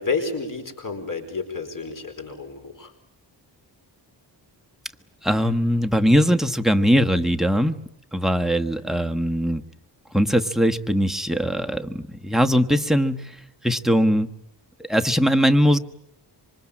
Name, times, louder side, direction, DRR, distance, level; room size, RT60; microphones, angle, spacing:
voice 1, 0.0-2.9, left 4 dB, 50° left, 7 dB, 4.7 m, -30 dB
voice 2, 5.2-7.8 8.1-9.6 10.1-13.4 13.6-14.3 14.9-15.8, equal, ahead, 10 dB, 1.3 m, -20 dB
27.0 x 25.0 x 8.8 m, 0.77 s
wide cardioid pair, 115°, 42 cm